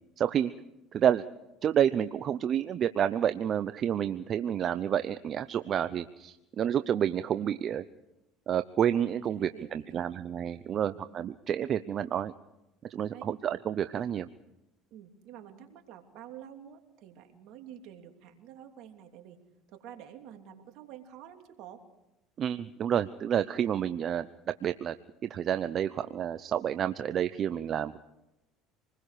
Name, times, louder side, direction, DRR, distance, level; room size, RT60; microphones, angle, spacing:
voice 1, 0.2-0.5 0.9-1.2 1.6-7.8 8.5-12.3 12.9-14.3 22.4-24.3 24.6-24.9 25.3-28.0, right 9 dB, 50° right, 11 dB, 0.8 m, -29 dB
voice 2, 9.3-10.1 10.8-11.0 13.1-13.3 14.9-19.4 19.7-21.8, right 10 dB, 70° right, 4 dB, 3.1 m, -49 dB
27.0 x 20.5 x 5.0 m, 0.93 s
supercardioid pair, 85°, 0 cm